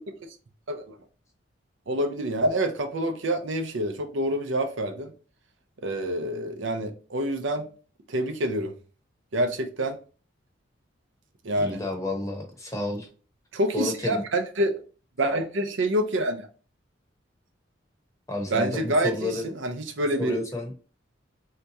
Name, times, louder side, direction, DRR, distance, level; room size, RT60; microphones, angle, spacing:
voice 1, 1.9-5.1 5.8-7.7 8.1-8.7 9.3-10.0 11.4-11.8 13.5-14.8 15.2-16.5 18.5-20.4, right 1 dB, 75° right, 0.6 m, -27 dB
voice 2, 11.6-13.1 13.7-14.2 18.3-19.5 20.2-20.7, left 2 dB, 15° left, 0.8 m, -31 dB
3.4 x 2.8 x 2.7 m
head